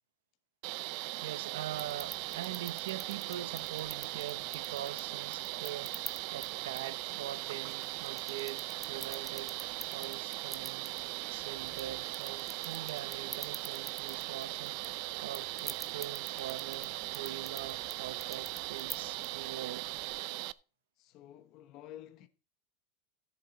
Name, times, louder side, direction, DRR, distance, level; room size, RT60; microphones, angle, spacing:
sound 1, 0.6-20.5, right 19 dB, 55° right, 0.5 m, -39 dB
voice 1, 1.2-11.0 11.3-19.9, right 12 dB, 85° right, 0.8 m, -43 dB
sound 2, 1.7-20.2, right 2 dB, 5° right, 0.8 m, -49 dB
voice 2, 21.0-22.3, left 12 dB, 45° left, 1.1 m, -51 dB
13.5 x 8.4 x 4.2 m
supercardioid pair, 145°, 0 cm